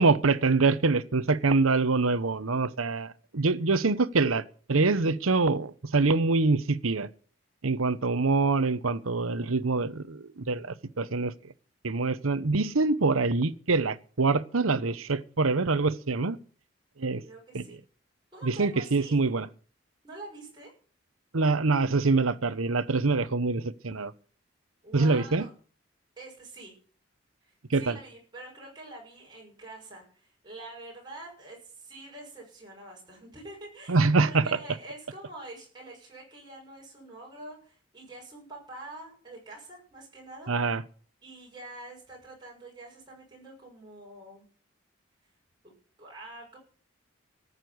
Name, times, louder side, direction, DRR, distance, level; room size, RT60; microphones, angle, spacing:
voice 1, 0.0-7.1 7.6-11.3 11.8-16.4 17.0-17.2 17.5-17.6 18.4-19.5 21.3-24.1 24.9-25.5 27.7-28.0 33.9-34.4 40.5-40.8, right 3 dB, 80° right, 0.9 m, -25 dB
voice 2, 17.2-17.8 18.3-19.2 20.0-20.7 24.8-25.5 26.2-26.7 27.4-40.7 41.2-44.5 45.6-45.7 46.0-46.6, right 2 dB, 20° right, 6.3 m, -46 dB
14.0 x 6.7 x 9.4 m
head